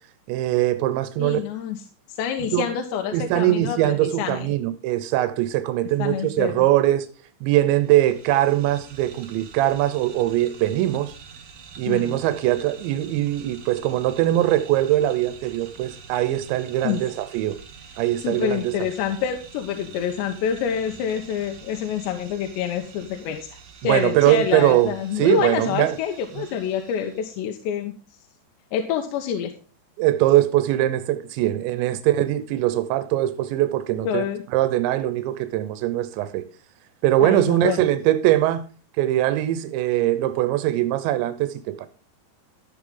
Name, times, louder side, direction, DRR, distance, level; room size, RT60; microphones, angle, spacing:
voice 1, 0.3-1.4 2.5-2.7 3.1-7.1 7.4-11.1 11.8-17.6 18.0-18.7 23.8-25.9 30.0-34.2 34.5-36.5 37.0-38.6 39.0-41.9, right 14 dB, 90° right, 3.1 m, -21 dB
voice 2, 1.2-1.8 2.1-4.5 6.0-6.7 11.9-12.2 16.8-17.0 18.2-23.6 23.8-27.9 28.7-29.5 34.1-34.4 37.2-37.9, left 8 dB, 80° left, 3.2 m, -27 dB
sound 1, 7.7-27.4, right 6 dB, 55° right, 1.9 m, -46 dB
13.0 x 8.5 x 3.8 m
omnidirectional pair, 5.0 m